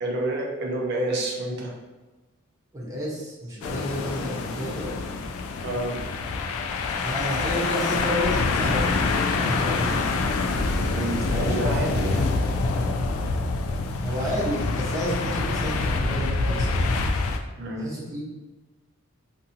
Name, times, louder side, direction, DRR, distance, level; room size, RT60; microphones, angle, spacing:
voice 1, 0.0-1.7 5.6-6.0 10.9-12.3 17.6-17.8, right 2 dB, 55° right, 0 dB, 0.6 m, -28 dB
voice 2, 2.7-4.9 7.0-9.0 9.4-10.1 10.8-11.9 14.0-16.9 17.8-18.2, equal, 15° right, -7 dB, 0.8 m, -31 dB
sound 1, 3.6-17.4, left 3 dB, 80° left, 0.3 m, -26 dB
2.6 x 2.6 x 2.6 m, 1.2 s
head